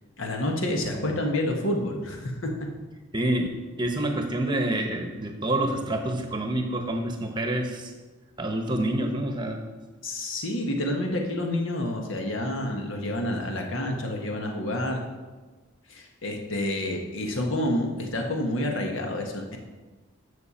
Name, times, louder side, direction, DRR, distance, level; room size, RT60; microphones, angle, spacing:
voice 1, 0.2-2.5 10.0-15.0 15.9-19.6, left 1 dB, 65° left, 2 dB, 1.5 m, -28 dB
voice 2, 3.1-3.5 3.8-7.9 8.4-9.6, right 1 dB, 20° right, 4 dB, 1.0 m, -27 dB
12.5 x 6.6 x 4.3 m, 1.3 s
head